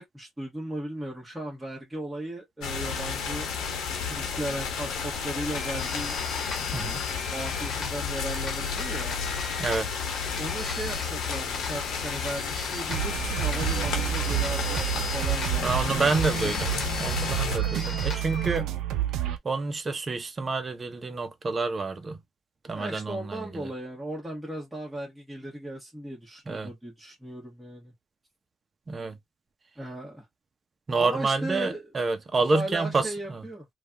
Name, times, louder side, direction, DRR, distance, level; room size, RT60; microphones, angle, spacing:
voice 1, 0.0-3.5 4.1-6.1 7.3-9.1 10.4-16.5 22.7-27.9 29.8-30.2 31.0-31.9 32.4-33.7, right 1 dB, 5° right, 1.4 m, -37 dB
sound 1, 2.6-17.6, left 6 dB, 85° left, 0.9 m, -32 dB
sound 2, 5.5-18.6, left 3 dB, 50° left, 1.1 m, -39 dB
voice 2, 9.6-9.9 15.6-18.7 19.4-22.2 22.6-23.7 26.5-26.7 28.9-29.2 30.9-33.4, right 3 dB, 35° right, 0.7 m, -28 dB
sound 3, 12.9-19.4, right 12 dB, 85° right, 0.4 m, -29 dB
3.2 x 2.3 x 2.5 m
cardioid pair, 90°, 0 cm